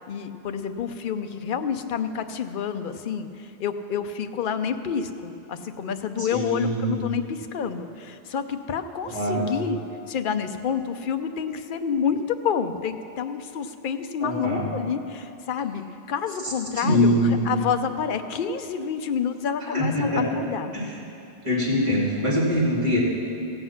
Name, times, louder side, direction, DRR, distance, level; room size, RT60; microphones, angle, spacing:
voice 1, 0.1-9.8 10.1-15.8 16.1-17.1 17.5-20.7, left 7 dB, 60° left, 8 dB, 0.8 m, -28 dB
voice 2, 6.2-6.9 9.0-9.5 14.2-14.7 16.4-17.4 19.7-20.2 20.7-20.9 21.4-23.0, equal, 30° right, -6 dB, 2.8 m, -23 dB
16.0 x 7.9 x 5.8 m, 2.7 s
omnidirectional pair, 1.1 m